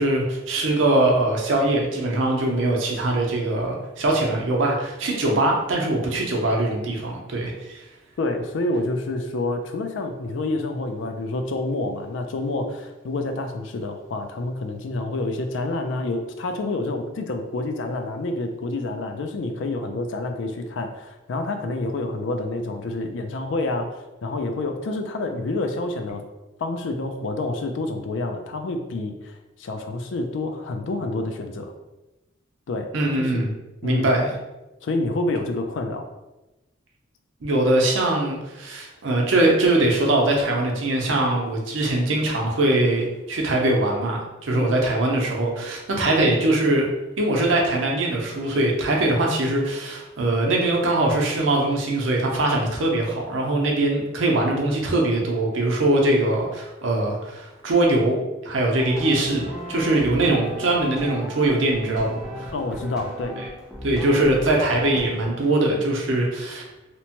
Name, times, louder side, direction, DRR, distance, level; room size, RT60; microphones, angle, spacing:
voice 1, 0.0-7.8 32.9-33.5 33.8-34.3 37.4-46.9 47.2-58.2 58.4-62.5 63.4-63.5 63.8-66.6, right 2 dB, 85° right, -1 dB, 0.6 m, -22 dB
voice 2, 8.2-26.2 26.6-31.7 32.7-32.9 33.2-33.5 33.8-34.1 34.8-36.1 44.5-44.8 62.5-63.3, left 2 dB, 75° left, 5 dB, 0.4 m, -28 dB
sound 1, 58.8-65.3, right 1 dB, 5° right, 0.3 m, -35 dB
2.9 x 2.1 x 2.8 m, 1.0 s
head